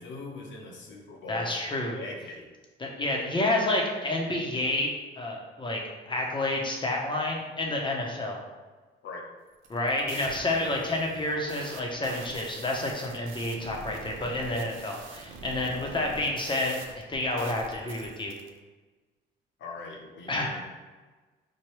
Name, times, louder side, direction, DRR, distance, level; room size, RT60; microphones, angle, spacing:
voice 1, 0.0-1.5 1.9-2.5 9.0-9.3 15.6-15.8 19.6-20.6, left 2 dB, 70° left, 0 dB, 0.8 m, -41 dB
voice 2, 1.3-2.0 2.8-8.4 9.7-18.3 20.3-20.6, left 2 dB, 25° left, -1 dB, 0.8 m, -29 dB
sound 1, 9.5-18.5, right 4 dB, 80° right, 0.5 m, -45 dB
4.6 x 2.2 x 3.1 m, 1.3 s
cardioid pair, 90°, 20 cm